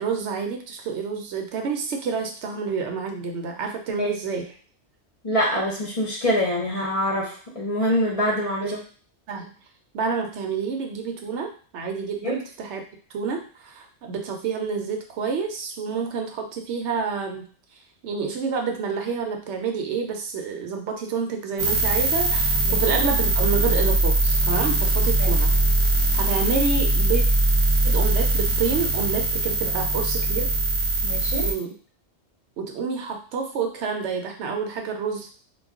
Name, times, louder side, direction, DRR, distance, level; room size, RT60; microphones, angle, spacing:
voice 1, 0.0-4.5 8.6-8.7 9.3-9.5 9.9-12.8 13.1-17.5 18.0-25.5 26.1-27.2 27.8-30.5 31.4-31.7 32.6-35.3, right 5 dB, 80° right, 3 dB, 0.9 m, -28 dB
voice 2, 5.2-8.8 12.2-12.3 22.6-22.8 25.2-25.4 31.0-31.5, equal, 40° left, -3 dB, 0.6 m, -25 dB
sound 1, 21.6-31.5, right 2 dB, 40° right, 0.4 m, -21 dB
2.3 x 2.2 x 3.6 m, 0.41 s
omnidirectional pair, 1.1 m